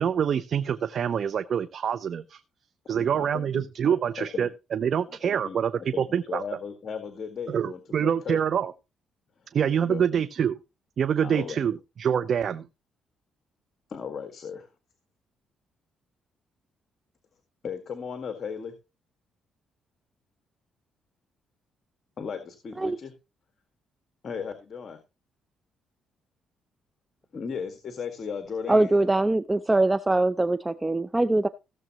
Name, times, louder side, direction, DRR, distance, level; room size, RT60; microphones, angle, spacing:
voice 1, 0.0-2.4 2.9-6.4 7.5-8.7 9.5-10.6 11.0-12.7, right 8 dB, 55° right, 12 dB, 0.7 m, -26 dB
voice 2, 2.9-4.5 5.2-8.4 9.8-10.2 11.2-11.6 13.9-14.7 17.6-18.7 22.2-23.1 24.2-25.0 27.3-29.0, left 6 dB, 50° left, 7 dB, 1.8 m, -36 dB
voice 3, 28.7-31.5, right 2 dB, 15° right, 13 dB, 0.5 m, -22 dB
16.5 x 7.3 x 3.0 m, 0.28 s
cardioid pair, 90°, 0 cm